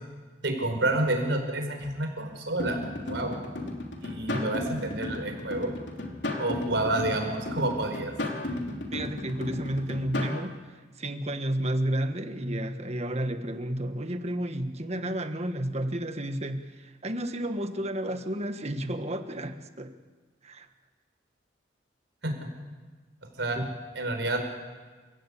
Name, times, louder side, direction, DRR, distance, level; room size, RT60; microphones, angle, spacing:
voice 1, 0.4-3.4 4.0-5.7 6.4-8.1 22.2-22.5 23.4-23.6 24.0-24.4, right 2 dB, 75° right, 4 dB, 5.2 m, -29 dB
sound 1, 2.6-10.4, left 2 dB, 75° left, 3.1 m, -34 dB
voice 2, 8.9-19.9 20.4-20.7 23.5-23.6, right 1 dB, 35° right, 8 dB, 1.6 m, -32 dB
29.0 x 17.0 x 8.6 m, 1.4 s
head